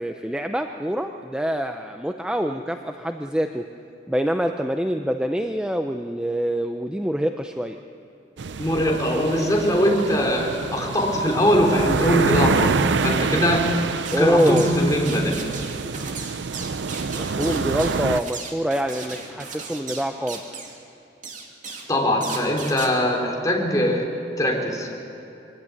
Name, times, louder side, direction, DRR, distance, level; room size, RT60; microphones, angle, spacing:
voice 1, 0.0-3.6 4.1-7.8 14.1-14.7 17.1-20.4, equal, 5° right, 5 dB, 0.6 m, -25 dB
sound 1, 8.4-18.2, right 4 dB, 70° right, 0.6 m, -27 dB
voice 2, 8.6-13.9 14.2-15.5 21.9-24.1 24.4-24.9, equal, 20° left, 0 dB, 3.3 m, -21 dB
sound 2, 14.0-14.8 15.1-20.8 21.2-21.9 22.2-22.9, right 4 dB, 45° right, 2.6 m, -36 dB
23.5 x 16.5 x 9.7 m, 2.9 s
head